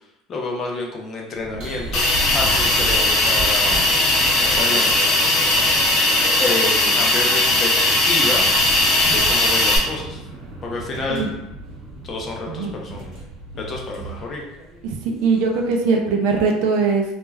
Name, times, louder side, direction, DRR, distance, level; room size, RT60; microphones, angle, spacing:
voice 1, 0.3-2.0 2.3-3.9 4.4-5.1 6.4-7.8 8.0-8.5 9.1-10.2 10.6-11.3 12.0-13.1 13.6-14.4, left 2 dB, 25° left, -1 dB, 0.4 m, -28 dB
sound 1, 1.3-15.8, right 1 dB, 40° right, 1.1 m, -34 dB
Hiss, 1.9-9.8, left 2 dB, 45° left, 0.8 m, -18 dB
voice 2, 15.2-17.0, right 4 dB, 60° right, 2 dB, 0.4 m, -20 dB
2.2 x 2.1 x 3.2 m, 0.86 s
cardioid pair, 180°, 0 cm